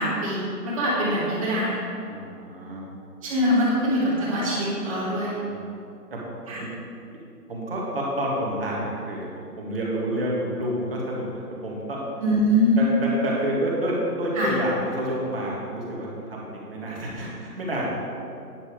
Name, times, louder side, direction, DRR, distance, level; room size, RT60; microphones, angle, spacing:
voice 1, 0.0-1.8 3.2-5.3 6.5-6.6 12.2-12.9 14.3-14.5, equal, 20° right, -9 dB, 2.2 m, -23 dB
voice 2, 2.1-2.8 5.5-5.6 6.1-6.2 6.6-6.7 7.5-9.3 9.6-12.0 12.8-17.9, right 1 dB, 35° right, -4 dB, 2.0 m, -29 dB
9.7 x 6.8 x 4.8 m, 2.5 s
hypercardioid pair, 170°, 48 cm